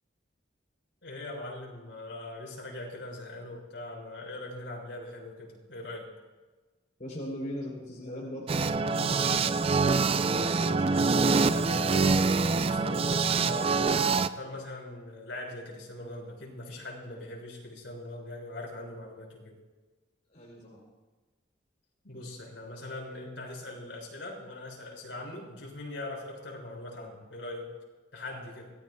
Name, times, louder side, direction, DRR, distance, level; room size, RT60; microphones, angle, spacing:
voice 1, 1.0-6.1 10.2-19.5 22.0-27.7 28.1-28.7, left 2 dB, 75° left, -3 dB, 6.0 m, -41 dB
voice 2, 7.0-9.5 20.3-20.8, left 1 dB, 45° left, -3 dB, 3.5 m, -39 dB
sound 1, 8.5-14.3, right 4 dB, 30° right, 0.4 m, -25 dB
25.5 x 19.0 x 2.3 m, 1.2 s
head